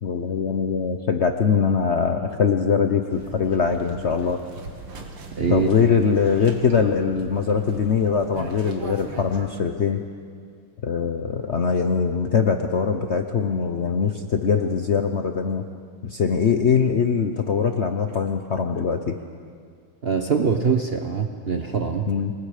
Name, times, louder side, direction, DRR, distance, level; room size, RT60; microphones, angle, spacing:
voice 1, 0.0-4.4 5.5-10.0 10.8-15.6 16.0-19.1 22.1-22.3, left 6 dB, 80° left, 6 dB, 0.6 m, -22 dB
sound 1, 3.1-9.5, right 3 dB, 80° right, 2.6 m, -40 dB
voice 2, 5.3-5.7 20.0-22.1, right 6 dB, 55° right, 4 dB, 0.6 m, -23 dB
27.5 x 19.5 x 5.0 m, 2.1 s
omnidirectional pair, 2.3 m